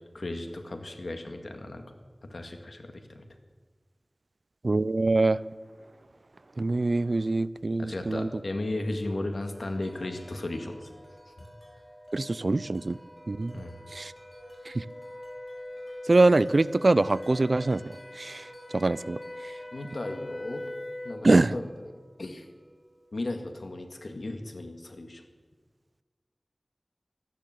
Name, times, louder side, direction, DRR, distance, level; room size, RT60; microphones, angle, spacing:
voice 1, 0.1-1.8 2.3-3.3 7.8-10.9 11.4-11.5 13.5-13.7 19.7-20.7 21.0-21.7 22.2-22.5 23.1-25.2, left 2 dB, 80° left, 5 dB, 1.9 m, -35 dB
voice 2, 4.6-5.4 6.6-8.3 12.1-13.0 13.3-13.6 13.9-14.1 14.7-14.8 16.1-17.8 18.2-18.4 18.7-19.2 21.2-21.5, right 2 dB, 70° right, 19 dB, 0.4 m, -24 dB
Wind chime, 9.5-23.5, equal, 20° left, 5.4 m, -52 dB
sound 1, 11.4-21.3, left 1 dB, 40° left, 0.6 m, -43 dB
13.5 x 12.0 x 7.6 m, 1.4 s
wide cardioid pair, 40°, 0 cm